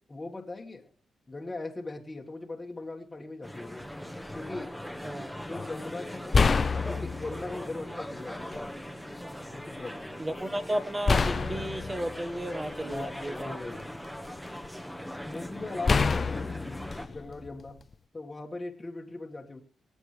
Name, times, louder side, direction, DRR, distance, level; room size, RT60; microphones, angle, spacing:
voice 1, 0.1-0.9 1.3-3.9 4.3-4.7 5.5-8.6 9.5-10.2 12.9-13.9 15.2-16.4 17.1-17.8 18.1-19.6, left 2 dB, 25° left, 1.6 m, -39 dB
sound 1, 3.4-17.1, equal, ahead, 1.3 m, -40 dB
voice 2, 5.0-5.4 10.2-13.6, right 1 dB, 20° right, 1.2 m, -33 dB
sound 2, 5.5-5.7 6.3-7.6 8.5-8.6 11.1-13.2 13.8-14.7 15.9-17.9, left 4 dB, 40° left, 0.5 m, -27 dB
24.0 x 8.0 x 3.3 m
cardioid pair, 75°, 0 cm